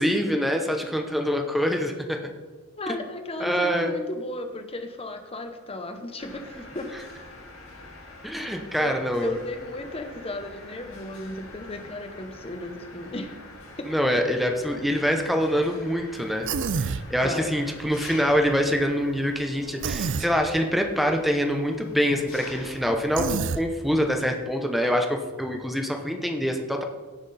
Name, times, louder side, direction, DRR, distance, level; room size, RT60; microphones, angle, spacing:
voice 1, 0.0-2.2 3.4-3.9 8.2-9.4 13.9-16.5 16.8-26.8, equal, ahead, 3 dB, 0.8 m, -25 dB
voice 2, 2.8-6.9 8.8-13.3 13.8-13.9 17.2-17.6, left 1 dB, 25° left, 6 dB, 1.0 m, -35 dB
Mechanisms, 6.2-24.2, left 2 dB, 65° left, 2.0 m, -45 dB
Human voice, 16.4-17.0 19.8-20.3 23.2-23.6, right 5 dB, 55° right, 0.5 m, -27 dB
17.0 x 5.9 x 4.2 m, 1.3 s
head